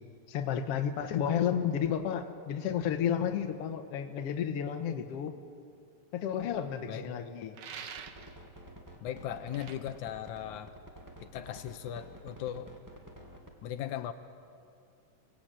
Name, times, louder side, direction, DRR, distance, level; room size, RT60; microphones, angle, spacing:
voice 1, 0.3-5.3 6.1-7.6, left 8 dB, 60° left, 6 dB, 2.0 m, -32 dB
sound 1, 7.5-8.4 9.5-9.8, right 7 dB, 75° right, 1.0 m, -44 dB
sound 2, 8.0-13.5, equal, 10° right, 1.6 m, -50 dB
voice 2, 9.0-10.7 11.2-12.7 13.6-14.1, left 10 dB, 90° left, 8 dB, 2.3 m, -38 dB
24.5 x 17.5 x 8.9 m, 2.4 s
omnidirectional pair, 3.4 m